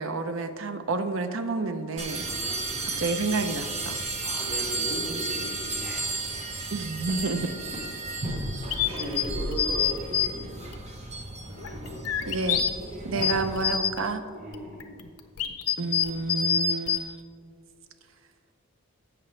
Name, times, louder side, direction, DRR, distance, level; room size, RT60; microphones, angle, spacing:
voice 1, 0.0-2.3 3.0-4.0 6.7-7.4 8.9-9.0 12.3-12.6 13.0-14.2 15.8-17.5, right 3 dB, 60° right, 8 dB, 0.6 m, -30 dB
sound 1, 2.0-13.6, right 2 dB, 30° right, 0.9 m, -33 dB
voice 2, 2.2-3.1 4.2-6.2 7.1-7.2 7.7-7.8 8.8-10.6 11.5-12.1 14.3-14.8, right 1 dB, 80° right, -10 dB, 2.2 m, -37 dB
sound 2, 8.7-10.3 10.7-10.8 11.5-12.7 13.1-14.0 14.5-17.0, left 8 dB, 80° left, 0.7 m, -26 dB
12.0 x 7.7 x 3.2 m, 2.1 s
head